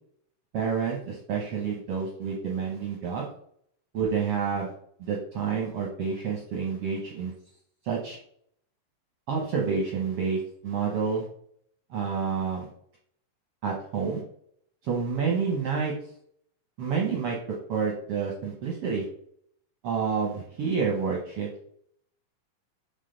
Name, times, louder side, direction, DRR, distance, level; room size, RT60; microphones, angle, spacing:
voice 1, 0.5-3.3 3.9-4.7 5.0-7.3 7.8-8.2 9.3-11.3 11.9-12.7 13.6-14.2 14.8-15.9 16.8-17.4 17.7-19.1 19.8-21.5, right 6 dB, 70° right, -2 dB, 1.4 m, -29 dB
7.4 x 3.9 x 3.9 m, 0.65 s
omnidirectional pair, 4.0 m